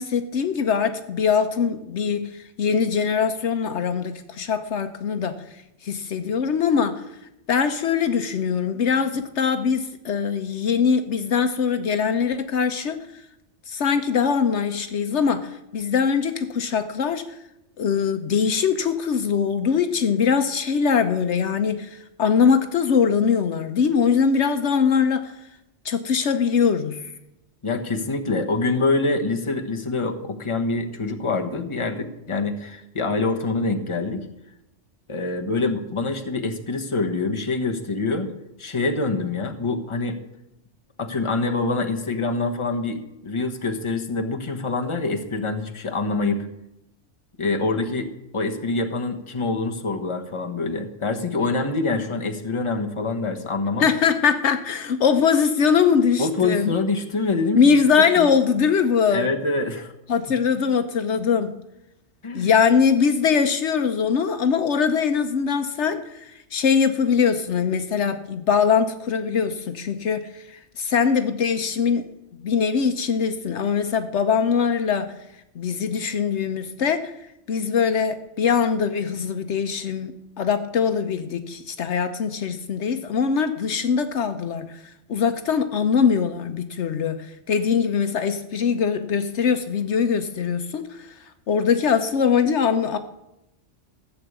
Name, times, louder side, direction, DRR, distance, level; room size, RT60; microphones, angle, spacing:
voice 1, 0.0-5.3 5.8-7.0 7.5-13.0 13.7-17.2 17.8-25.3 25.8-27.1 53.8-56.7 57.5-59.3 60.1-61.6 62.3-72.1 72.4-75.1 75.5-77.1 77.5-84.8 85.1-91.1 91.5-93.0, left 6 dB, 70° left, 8 dB, 1.0 m, -22 dB
voice 2, 27.6-34.3 35.1-38.3 38.6-40.2 41.0-46.5 47.4-53.9 56.2-57.6 58.2-58.3 59.1-59.9 62.2-62.5, left 3 dB, 25° left, 4 dB, 1.2 m, -25 dB
14.5 x 6.9 x 8.1 m, 0.88 s
omnidirectional pair, 1.2 m